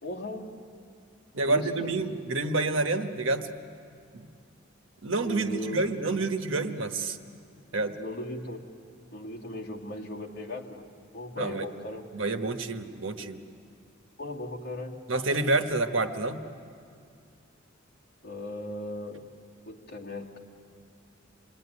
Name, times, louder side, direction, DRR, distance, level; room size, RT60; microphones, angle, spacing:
voice 1, 0.0-0.5 1.5-2.0 5.2-5.8 8.0-8.6 9.1-10.8 11.1-12.1 14.2-15.0 18.2-19.2 19.7-20.4, left 1 dB, 55° left, -3 dB, 2.8 m, -37 dB
voice 2, 1.3-3.5 4.1-4.3 5.0-7.2 7.7-8.0 11.4-11.7 12.1-13.4 15.1-16.4, right 2 dB, 75° right, 6 dB, 1.3 m, -28 dB
27.5 x 21.0 x 9.8 m, 2.4 s
head